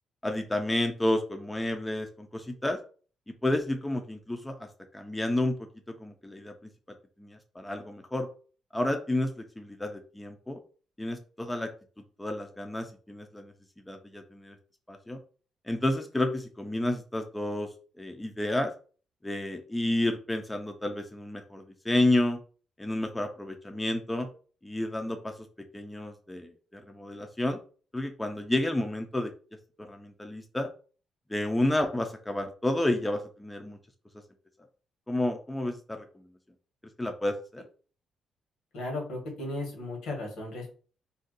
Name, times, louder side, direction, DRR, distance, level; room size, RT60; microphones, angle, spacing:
voice 1, 0.2-2.8 3.3-4.7 4.9-5.6 5.9-6.5 7.2-8.3 8.7-10.6 11.0-11.7 12.2-13.5 13.9-14.6 14.9-15.2 15.7-17.7 18.0-18.7 19.2-22.4 22.8-24.3 24.6-25.3 25.7-27.6 27.9-29.3 29.9-30.7 31.3-33.8 35.1-36.0 37.0-37.6, left 1 dB, 10° left, 5 dB, 0.5 m, -30 dB
voice 2, 38.7-40.7, left 2 dB, 80° left, 1 dB, 1.3 m, -35 dB
2.6 x 2.2 x 3.8 m, 0.40 s
cardioid pair, 90°, 0 cm